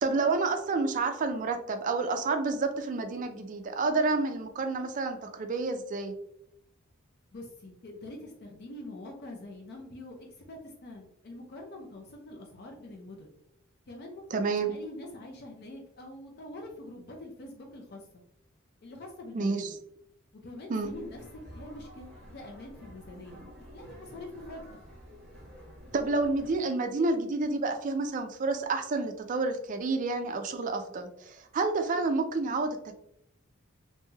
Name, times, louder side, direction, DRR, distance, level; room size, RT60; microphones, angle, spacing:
voice 1, 0.0-6.1 14.3-14.7 19.3-19.7 20.7-20.9 25.9-32.9, right 3 dB, 35° right, 6 dB, 0.3 m, -29 dB
voice 2, 7.3-10.2 10.5-13.3 13.9-14.4 14.7-18.0 18.8-19.7 20.4-21.2 21.5-23.4 23.7-24.8, left 1 dB, 50° left, 0 dB, 0.5 m, -45 dB
sound 1, 20.8-26.6, equal, 5° left, 1.2 m, -49 dB
3.1 x 2.6 x 2.2 m, 0.76 s
head